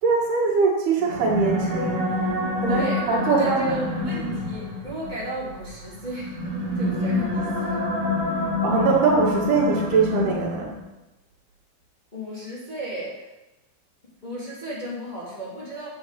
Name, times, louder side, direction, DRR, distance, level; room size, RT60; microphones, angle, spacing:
voice 1, 0.0-4.4 8.3-10.8, right 4 dB, 80° right, -2 dB, 4.2 m, -23 dB
sound 1, 1.0-10.9, left 2 dB, 55° right, 3.6 m, -27 dB
voice 2, 2.7-3.8 4.0-6.4 6.7-7.8 8.3-8.4 12.1-13.3 14.2-15.9, equal, 10° left, -8 dB, 2.9 m, -35 dB
10.5 x 7.6 x 6.0 m, 1.0 s
omnidirectional pair, 4.5 m